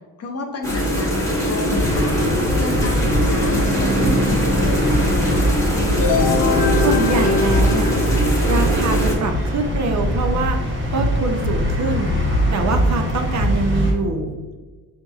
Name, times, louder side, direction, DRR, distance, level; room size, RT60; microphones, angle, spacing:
voice 1, 0.2-2.2 2.6-5.5, left 3 dB, 40° left, 3 dB, 0.6 m, -30 dB
sound 1, 0.6-9.1, equal, 10° left, 0.9 m, -22 dB
sound 2, 1.7-13.9, equal, 30° right, 1.1 m, -22 dB
sound 3, 6.0-8.7, left 4 dB, 90° left, 0.8 m, -22 dB
voice 2, 6.8-8.1 8.5-14.4, right 3 dB, 50° right, 5 dB, 0.5 m, -24 dB
5.9 x 2.6 x 2.3 m, 1.4 s
wide cardioid pair, 155°, 37 cm